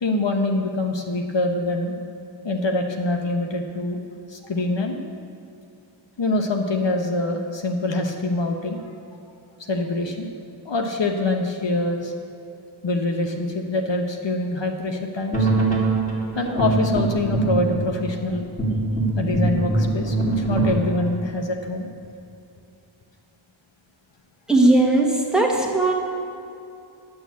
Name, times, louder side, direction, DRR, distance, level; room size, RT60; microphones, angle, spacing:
voice 1, 0.0-1.9 2.4-4.0 4.3-5.0 6.2-8.8 9.7-10.3 10.6-12.1 12.8-15.5 16.3-18.4 19.1-21.9, left 2 dB, 60° left, 4 dB, 1.0 m, -25 dB
sound 1, 15.3-20.8, right 3 dB, 15° left, 2.8 m, -22 dB
voice 2, 24.5-25.9, right 2 dB, ahead, 0 dB, 1.6 m, -18 dB
11.0 x 6.4 x 8.3 m, 2.7 s
wide cardioid pair, 100°, 48 cm